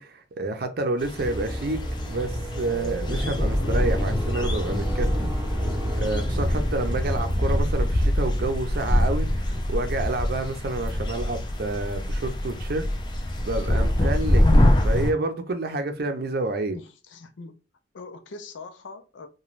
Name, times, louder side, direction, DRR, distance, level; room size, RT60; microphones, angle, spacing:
voice 1, 0.0-1.8 2.1-5.3 6.0-12.9 13.5-14.5 14.8-16.8, right 2 dB, 55° right, 0.5 m, -29 dB
sound 1, 1.0-15.1, left 1 dB, 25° left, 0.4 m, -25 dB
sound 2, 1.2-8.5, equal, 15° right, 0.7 m, -30 dB
voice 2, 16.7-17.5 17.9-19.3, left 3 dB, 85° left, 0.5 m, -42 dB
2.5 x 2.2 x 3.1 m
head